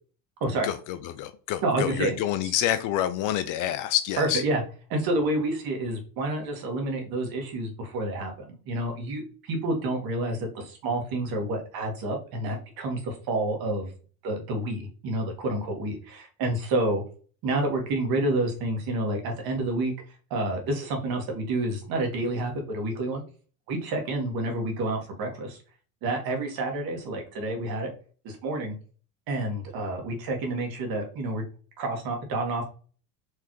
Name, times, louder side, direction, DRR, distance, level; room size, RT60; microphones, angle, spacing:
voice 1, 0.6-4.4, left 11 dB, 45° left, 12 dB, 0.4 m, -28 dB
voice 2, 1.6-2.2 4.2-4.6 4.9-13.9 14.2-17.0 17.4-19.9 20.3-23.2 23.7-25.6 26.0-27.9 28.2-28.8 29.3-31.4 31.8-32.6, right 2 dB, 50° right, 2 dB, 1.8 m, -29 dB
4.8 x 3.2 x 3.1 m, 0.40 s
supercardioid pair, 105°, 46 cm